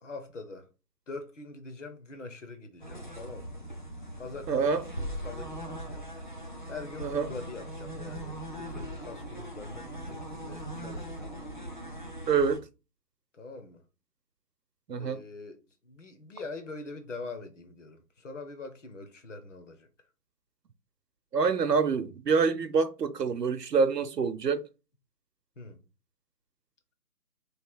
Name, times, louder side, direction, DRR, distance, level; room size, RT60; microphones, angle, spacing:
voice 1, 0.0-0.7 1.1-3.6 4.2-6.1 6.7-11.3 13.3-13.8 15.0-15.6 15.8-19.9 25.6-25.8, left 3 dB, 50° left, 0.9 m, -43 dB
sound 1, 2.8-12.6, right 1 dB, 30° left, 0.5 m, -40 dB
voice 2, 4.5-4.9 7.0-7.3 12.3-12.6 14.9-15.2 21.3-24.7, right 5 dB, 80° right, 0.7 m, -26 dB
3.2 x 2.8 x 4.5 m
figure-of-eight pair, 145°, 48 cm